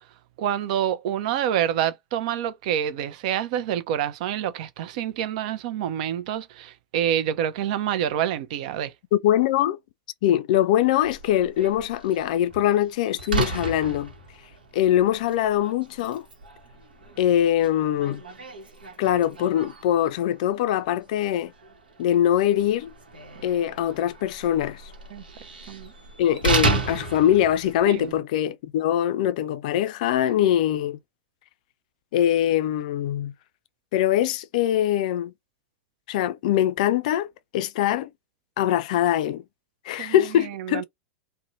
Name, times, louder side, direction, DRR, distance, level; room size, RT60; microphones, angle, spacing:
voice 1, 0.4-8.9 25.1-25.2 25.7-25.9 27.9-28.1 30.2-30.3 40.0-40.1 40.7-40.8, right 10 dB, 55° right, 0.5 m, -27 dB
voice 2, 9.1-9.8 10.2-14.1 14.7-16.3 17.2-18.2 19.0-21.5 22.0-22.9 23.4-24.9 26.2-31.0 32.1-33.3 33.9-35.3 36.1-37.3 37.5-38.1 38.6-39.4 39.9-40.8, left 11 dB, 55° left, 0.3 m, -22 dB
Slam, 11.0-28.2, right 3 dB, 85° right, 0.9 m, -33 dB
2.7 x 2.1 x 2.6 m
figure-of-eight pair, 95°, 5 cm